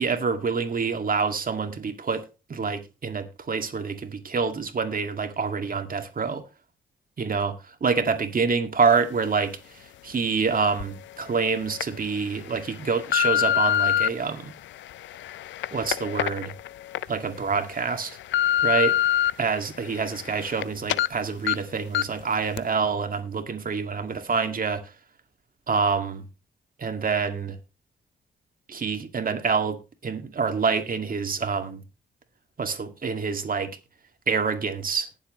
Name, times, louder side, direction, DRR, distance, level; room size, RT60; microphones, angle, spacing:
voice 1, 0.0-2.2 2.5-6.4 7.2-7.5 7.8-9.6 10.0-14.5 15.7-16.5 17.1-18.2 18.6-18.9 19.4-24.8 25.7-26.3 26.8-27.6 28.7-31.8 32.6-33.7 34.3-35.1, right 5 dB, 50° right, 2.1 m, -26 dB
sound 1, 10.8-10.9 11.5-11.8 12.5-14.1 14.7-17.0 17.5-17.6 18.0-19.3 19.7-20.6 20.9-21.1 21.5-21.6 21.9-22.2 22.6-22.7, left 12 dB, 85° left, 0.5 m, -25 dB
19.0 x 7.4 x 3.1 m
supercardioid pair, 55°, 19 cm